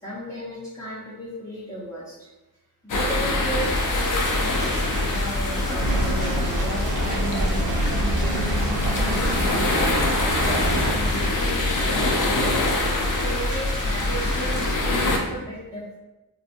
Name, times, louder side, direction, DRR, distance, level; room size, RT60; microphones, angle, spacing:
voice 1, 0.0-2.3 2.8-9.7 10.4-12.6 13.2-16.0, equal, 10° left, -9 dB, 0.6 m, -35 dB
sound 1, 2.9-15.2, left 2 dB, 55° left, 0.5 m, -24 dB
sound 2, 3.5-14.7, equal, 55° right, 0.9 m, -36 dB
sound 3, 5.8-10.9, right 1 dB, 75° right, 0.5 m, -27 dB
2.8 x 2.2 x 2.4 m, 1.0 s
wide cardioid pair, 60°, 37 cm